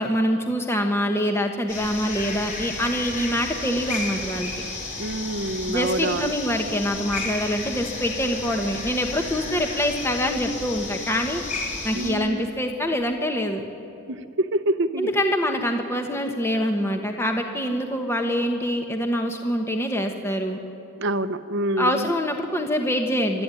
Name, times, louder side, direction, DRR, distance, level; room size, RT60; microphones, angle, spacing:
voice 1, 0.0-4.5 5.7-11.4 11.8-13.6 15.0-20.6 21.8-23.4, equal, 10° left, 4 dB, 1.2 m, -25 dB
sound 1, 1.7-12.1, left 3 dB, 35° left, 4.2 m, -33 dB
voice 2, 5.0-6.3 11.9-12.5 14.1-15.1 21.0-22.1, right 1 dB, 60° right, 11 dB, 0.8 m, -26 dB
26.5 x 13.0 x 9.9 m, 2.8 s
head